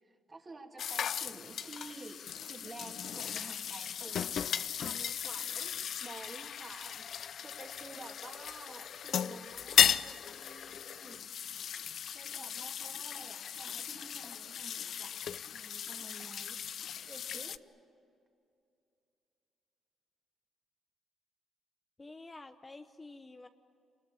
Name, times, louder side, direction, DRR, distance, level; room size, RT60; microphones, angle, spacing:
voice 1, 0.0-2.2 2.5-11.3 12.1-15.1 15.5-17.6, right 3 dB, 30° right, 3 dB, 2.6 m, -51 dB
sound 1, 0.8-17.6, left 8 dB, 60° left, 0.5 m, -35 dB
voice 2, 22.0-23.5, left 2 dB, 25° left, 7 dB, 1.0 m, -49 dB
28.0 x 21.0 x 8.5 m, 2.5 s
cardioid pair, 90°, 0 cm